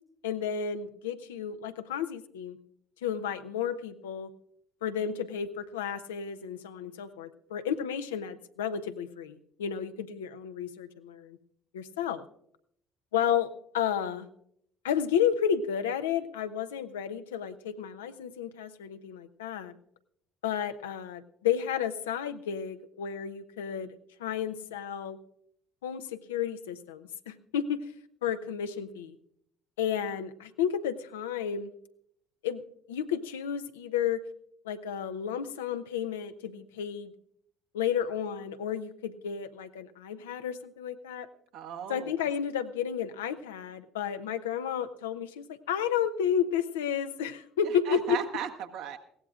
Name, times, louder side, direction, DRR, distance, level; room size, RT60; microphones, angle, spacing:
voice 1, 0.2-2.6 3.0-4.3 4.8-11.4 11.7-12.2 13.1-14.3 14.8-19.7 20.4-23.9 24.2-25.2 25.8-27.8 28.2-29.2 29.8-31.7 32.4-32.6 32.9-34.2 34.6-37.1 37.7-41.3 41.9-48.2, left 8 dB, 75° left, 10 dB, 0.7 m, -32 dB
voice 2, 41.5-42.3 47.6-49.0, right 9 dB, 65° right, 5 dB, 1.3 m, -37 dB
20.5 x 16.5 x 2.4 m, 0.71 s
figure-of-eight pair, 50°, 0 cm